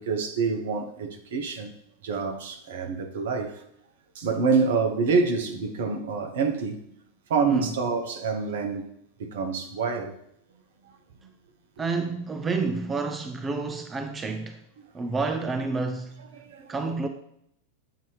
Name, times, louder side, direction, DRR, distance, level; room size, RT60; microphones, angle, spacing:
voice 1, 0.0-1.7 2.0-3.6 4.1-6.8 7.3-8.9 9.2-10.1 16.3-16.7, right 5 dB, 55° right, 0.9 m, -27 dB
voice 2, 11.8-14.6 14.9-16.3 16.7-17.1, right 3 dB, 20° right, 0.4 m, -29 dB
7.9 x 2.8 x 4.9 m
figure-of-eight pair, 90°, 0 cm